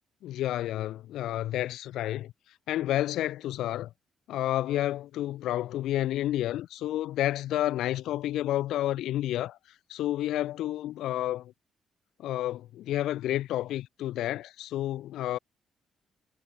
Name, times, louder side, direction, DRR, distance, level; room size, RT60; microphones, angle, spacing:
voice 1, 0.2-2.3 2.7-3.9 4.3-9.6 9.9-11.5 12.2-15.4, left 13 dB, 85° left, 2.3 m, -30 dB
cardioid pair, 90°, 0 cm